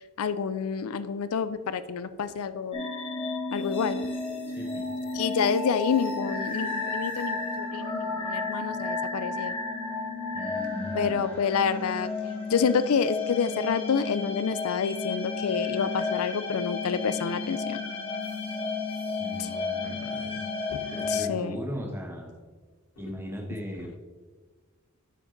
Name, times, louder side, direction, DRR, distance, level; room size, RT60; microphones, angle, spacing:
voice 1, 0.2-2.9 3.5-4.0 5.1-9.6 10.9-12.1 12.5-17.8 20.7-21.6, left 6 dB, 75° left, 13 dB, 0.4 m, -28 dB
sound 1, 2.7-21.2, left 3 dB, 25° left, 1.4 m, -32 dB
voice 2, 10.3-11.3 19.2-20.3 20.9-22.4 23.0-23.9, equal, 10° right, 0 dB, 1.2 m, -38 dB
10.0 x 5.0 x 3.9 m, 1.4 s
head